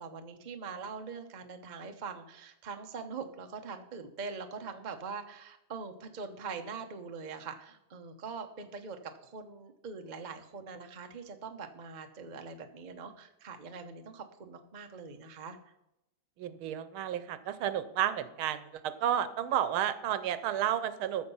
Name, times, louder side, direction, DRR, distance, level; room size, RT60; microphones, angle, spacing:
voice 1, 0.0-15.6, right 5 dB, 40° right, 5 dB, 0.6 m, -43 dB
voice 2, 16.4-21.3, right 10 dB, 80° right, 13 dB, 1.6 m, -31 dB
14.0 x 6.4 x 5.5 m, 0.87 s
omnidirectional pair, 2.3 m